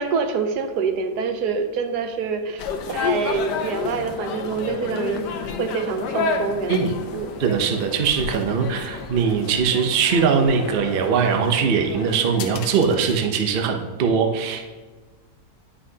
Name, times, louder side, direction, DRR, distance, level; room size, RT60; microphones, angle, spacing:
voice 1, 0.0-5.3 5.6-6.8 7.1-7.3, right 5 dB, 75° right, 7 dB, 1.2 m, -26 dB
sound 1, 2.6-13.2, left 5 dB, 90° left, 1.3 m, -30 dB
voice 2, 7.4-14.7, right 6 dB, 50° right, 4 dB, 0.7 m, -21 dB
9.7 x 5.6 x 2.8 m, 1.3 s
omnidirectional pair, 1.7 m